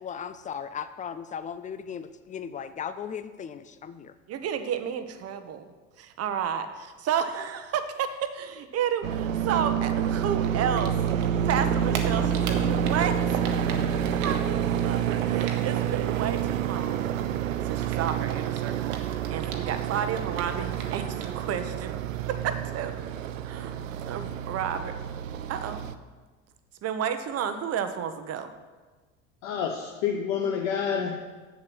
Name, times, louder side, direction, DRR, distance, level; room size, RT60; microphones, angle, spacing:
voice 1, 0.0-4.1, left 7 dB, 20° left, 13 dB, 0.5 m, -37 dB
voice 2, 4.3-5.6 6.0-10.9 11.4-13.2 14.2-17.1 17.7-19.0 19.3-22.0 22.3-22.9 23.4-25.0 25.5-25.8 26.8-28.4, right 8 dB, 40° right, 9 dB, 1.0 m, -31 dB
sound 1, 9.0-25.9, right 9 dB, 85° right, 0.6 m, -28 dB
Typing, 9.8-11.2 11.5-16.0 16.2-19.8 20.1-21.4, right 7 dB, 70° right, 1.4 m, -40 dB
voice 3, 29.4-31.2, left 7 dB, 65° left, 2 dB, 1.0 m, -28 dB
7.7 x 7.1 x 6.1 m, 1.3 s
hypercardioid pair, 80°, 39 cm